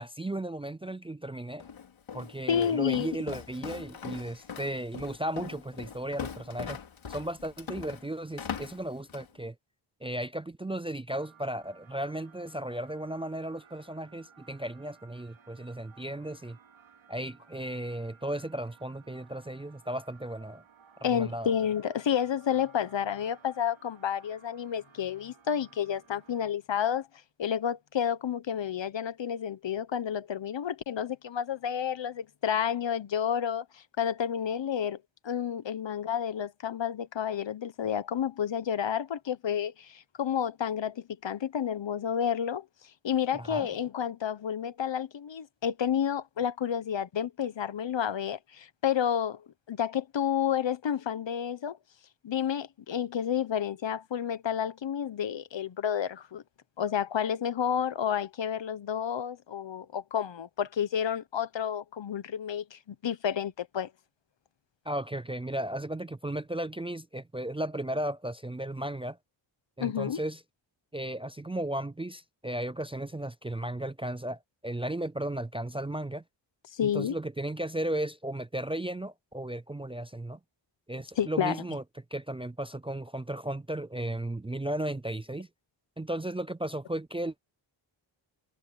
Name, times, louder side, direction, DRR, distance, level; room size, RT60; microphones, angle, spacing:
voice 1, 0.0-1.6 2.1-6.8 7.1-9.5 10.0-16.6 17.1-20.6 21.0-21.5 43.3-43.7 64.9-69.2 69.8-70.4 70.9-76.2 76.8-80.4 80.9-81.8 82.1-85.5 86.0-87.4, right 1 dB, 10° right, 0.5 m, -35 dB
Walk footsteps, 1.6-9.3, left 7 dB, 90° left, 3.8 m, -41 dB
voice 2, 2.5-3.1 21.0-27.1 27.4-35.0 35.2-42.7 43.0-51.8 52.2-56.4 56.8-63.9 69.8-70.2 76.7-77.1 81.2-81.6, left 8 dB, 70° left, 1.2 m, -30 dB
sound 1, 11.1-26.5, right 6 dB, 80° right, 3.4 m, -59 dB
wide cardioid pair, 95°, 46 cm